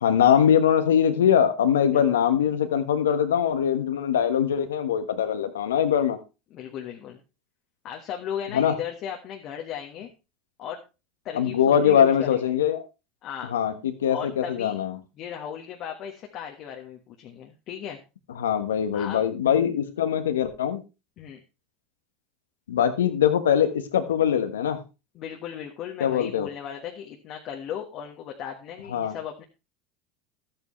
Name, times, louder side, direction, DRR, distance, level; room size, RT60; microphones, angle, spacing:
voice 1, 0.0-6.2 8.5-8.7 11.3-12.8 13.5-14.9 18.4-20.8 22.7-24.8 26.0-26.5 28.9-29.1, left 9 dB, 90° left, 9 dB, 1.3 m, -22 dB
voice 2, 6.5-7.2 7.8-10.1 10.6-10.8 11.2-12.6 13.2-13.5 14.1-14.8 15.2-18.0 18.9-19.2 21.2-21.4 25.1-29.4, left 9 dB, 50° left, 1 dB, 1.5 m, -36 dB
12.5 x 9.1 x 3.2 m, 0.29 s
hypercardioid pair, 90°, 0 cm